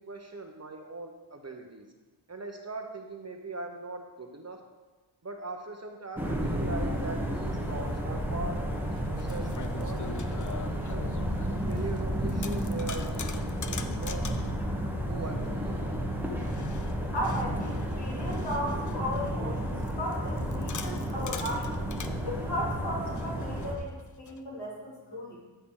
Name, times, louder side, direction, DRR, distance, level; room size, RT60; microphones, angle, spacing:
voice 1, 0.0-1.9 2.3-4.6 5.2-10.0 10.3-11.1 11.7-14.2 15.1-16.0, right 3 dB, 35° right, 3 dB, 0.9 m, -40 dB
sound 1, 6.2-23.7, equal, 5° right, 1.0 m, -32 dB
sound 2, 8.1-8.2 8.9-12.0 12.3-14.5 16.4-19.3 19.8-22.2 23.2-24.4, left 6 dB, 40° left, 0.5 m, -43 dB
voice 2, 17.1-21.7 22.2-25.4, equal, 60° left, -5 dB, 3.0 m, -35 dB
13.0 x 5.7 x 3.8 m, 1.2 s
wide cardioid pair, 105°, 46 cm